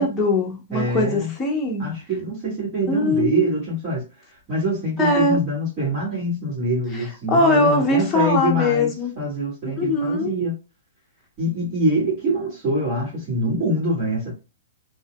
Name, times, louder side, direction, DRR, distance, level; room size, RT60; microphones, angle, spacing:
voice 1, 0.0-1.9 2.9-3.6 5.0-5.4 7.3-9.1 9.8-10.3, left 2 dB, 10° left, 1.0 m, -21 dB
voice 2, 0.7-1.3 1.8-4.0 4.5-8.9 9.2-10.5 11.4-14.3, right 1 dB, 30° right, 2.0 m, -24 dB
4.1 x 2.8 x 2.3 m
hypercardioid pair, 150°, 0 cm